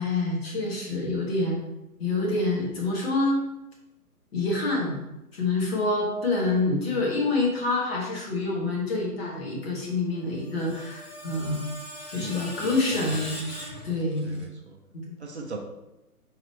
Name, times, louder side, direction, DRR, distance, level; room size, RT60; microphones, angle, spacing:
voice 1, 0.0-1.6 2.0-3.4 4.3-5.0 5.3-11.6 12.1-13.5 13.8-14.4 14.9-15.2, left 2 dB, 40° left, -2 dB, 1.3 m, -27 dB
Screech, 10.2-14.5, left 1 dB, 80° left, 1.4 m, -40 dB
voice 2, 12.1-13.2 13.9-14.8 15.2-15.6, right 3 dB, 45° right, 2 dB, 0.6 m, -40 dB
3.9 x 3.0 x 4.3 m, 0.93 s
figure-of-eight pair, 135°, 46 cm